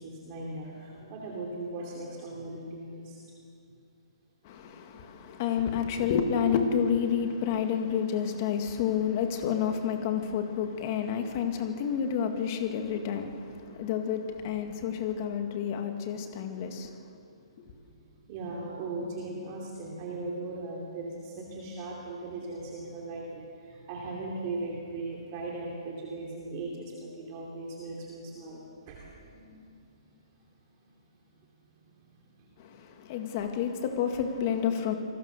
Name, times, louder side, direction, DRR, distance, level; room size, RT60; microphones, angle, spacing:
voice 1, 0.0-3.2 10.9-11.1 13.7-13.8 17.1-17.2 17.6-17.7 18.3-30.5 30.8-30.9 31.8-32.1 32.4-32.9, right 2 dB, 20° right, -3 dB, 2.8 m, -39 dB
voice 2, 4.4-16.9 17.6-17.7 32.6-34.9, left 7 dB, 25° left, 5 dB, 1.9 m, -29 dB
28.5 x 21.0 x 6.8 m, 2.4 s
hypercardioid pair, 180°, 3 cm